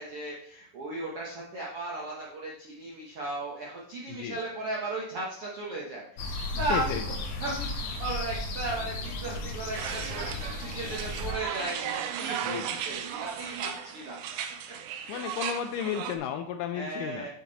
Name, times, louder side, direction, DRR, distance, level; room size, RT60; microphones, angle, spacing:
voice 1, 0.0-7.0 7.4-12.6 12.9-14.2 16.7-17.3, right 2 dB, 70° right, -4 dB, 1.3 m, -36 dB
voice 2, 4.1-4.4 6.6-7.1 12.4-12.8 15.1-17.3, left 9 dB, 90° left, 7 dB, 1.8 m, -33 dB
sound 1, 6.2-11.3, left 2 dB, 65° left, 2.4 m, -35 dB
sound 2, 9.7-16.2, right 9 dB, 85° right, 1.7 m, -36 dB
9.0 x 5.7 x 4.0 m, 0.67 s
omnidirectional pair, 4.4 m